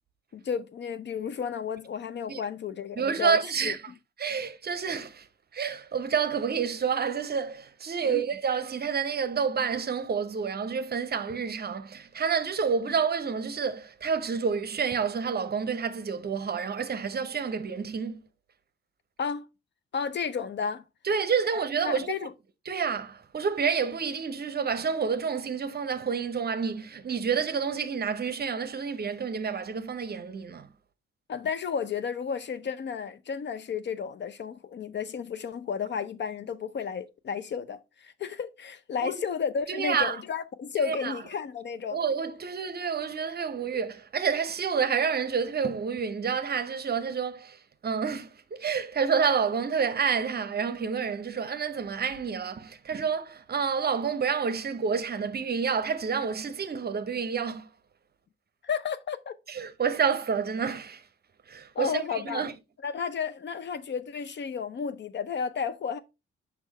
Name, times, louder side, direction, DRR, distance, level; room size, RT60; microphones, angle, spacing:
voice 1, 0.3-3.4 3.6-3.7 8.0-8.2 19.2-19.5 19.9-20.8 21.8-22.3 31.3-42.0 58.6-59.3 61.7-62.5 62.8-66.0, left 6 dB, 35° left, 0.6 m, -32 dB
voice 2, 3.0-3.9 4.2-5.3 5.5-18.2 21.0-22.2 22.7-30.7 39.0-39.2 39.7-40.2 40.8-41.2 41.9-57.7 59.5-61.0 61.5-62.5, right 6 dB, 30° right, 0.7 m, -29 dB
6.3 x 5.5 x 3.1 m
figure-of-eight pair, 40°, 30 cm